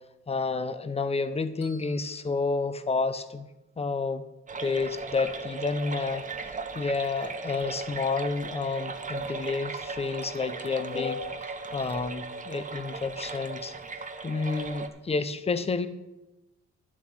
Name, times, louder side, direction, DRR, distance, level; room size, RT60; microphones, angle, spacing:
voice 1, 0.3-3.5 3.8-4.2 4.6-13.7 14.2-15.9, left 4 dB, 20° left, 12 dB, 0.7 m, -30 dB
Bell, 1.6-3.8, left 2 dB, 75° left, 3.9 m, -57 dB
sound 1, 4.5-14.9, right 4 dB, 25° right, 0.9 m, -37 dB
10.5 x 7.5 x 6.2 m, 1.0 s
cardioid pair, 90°, 30 cm